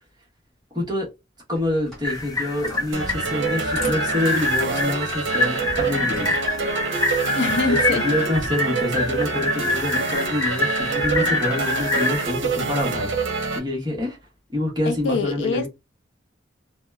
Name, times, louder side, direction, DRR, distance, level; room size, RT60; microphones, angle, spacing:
voice 1, 0.7-1.1 1.5-6.3 7.6-7.8 8.0-14.2 14.5-15.7, left 1 dB, 20° right, 1.1 m, -26 dB
sound 1, 1.6-6.7, equal, 5° left, 1.2 m, -41 dB
sound 2, 2.0-12.3, left 2 dB, 20° left, 0.4 m, -26 dB
sound 3, 2.9-13.6, right 4 dB, 85° right, 0.7 m, -26 dB
voice 2, 7.4-8.0 14.9-15.7, left 3 dB, 75° left, 0.5 m, -24 dB
2.7 x 2.1 x 2.3 m
head